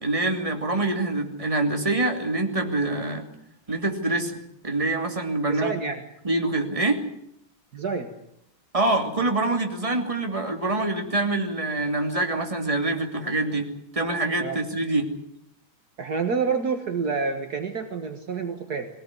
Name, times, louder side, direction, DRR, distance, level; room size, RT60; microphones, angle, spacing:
voice 1, 0.0-3.3 3.7-5.7 6.2-7.0 8.7-15.1, right 2 dB, 15° right, 3 dB, 2.9 m, -25 dB
voice 2, 5.5-6.0 7.7-8.1 14.4-14.6 16.0-18.9, right 5 dB, 55° right, 6 dB, 2.0 m, -28 dB
22.0 x 18.0 x 9.8 m, 0.73 s
omnidirectional pair, 2.1 m